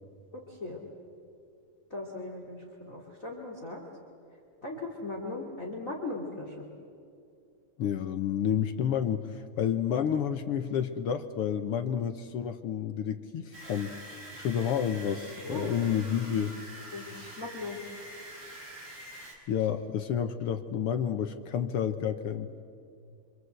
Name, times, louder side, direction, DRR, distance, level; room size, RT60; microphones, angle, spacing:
voice 1, 0.3-0.8 1.9-3.8 4.6-6.6 15.4-15.8 16.9-17.8, left 2 dB, 30° left, 1 dB, 2.8 m, -38 dB
voice 2, 7.8-14.0 14.3-16.6 19.5-22.5, left 8 dB, 65° left, 8 dB, 1.5 m, -30 dB
sound 1, 13.5-19.3, right 1 dB, 60° right, 5.7 m, -46 dB
26.5 x 25.5 x 8.0 m, 2.4 s
omnidirectional pair, 3.4 m